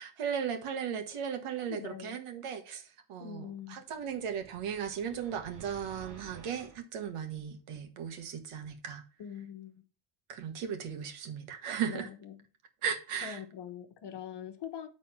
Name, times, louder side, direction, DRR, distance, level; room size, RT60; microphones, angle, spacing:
voice 1, 0.0-9.0 10.3-12.1 12.8-13.4, right 8 dB, 85° right, 1.8 m, -36 dB
voice 2, 1.7-2.2 3.2-3.8 9.2-9.8 11.9-12.4 13.2-14.9, left 8 dB, 55° left, 1.2 m, -43 dB
sound 1, 3.9-6.8, right 3 dB, 35° right, 1.6 m, -53 dB
8.8 x 4.2 x 5.7 m
cardioid pair, 145°, 50 cm